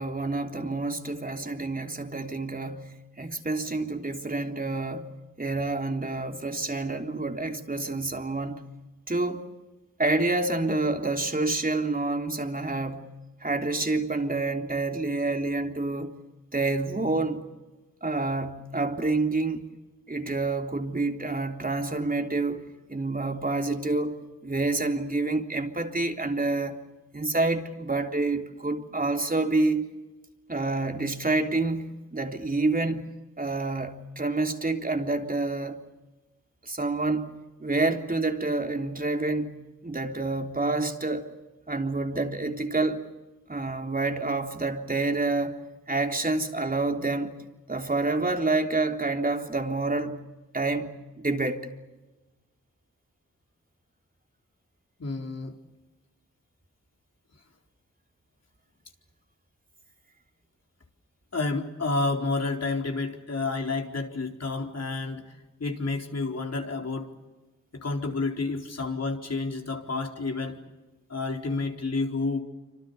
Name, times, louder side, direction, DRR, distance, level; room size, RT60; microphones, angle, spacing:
voice 1, 0.0-5.1 5.4-8.6 9.1-9.5 10.0-13.1 13.4-16.2 16.5-17.5 18.0-19.6 20.1-26.8 27.1-29.9 30.5-33.0 33.4-35.8 36.6-37.3 37.6-39.6 39.8-41.3 41.7-43.1 43.5-45.6 45.9-47.4 47.7-50.2 50.5-51.6, right 2 dB, 30° right, 3.5 m, -28 dB
voice 2, 55.0-55.5 61.3-65.3 65.6-67.1 67.7-70.6 71.1-72.4, left 3 dB, 55° left, 4.3 m, -30 dB
27.5 x 25.5 x 7.0 m
cardioid pair, 45°, 31 cm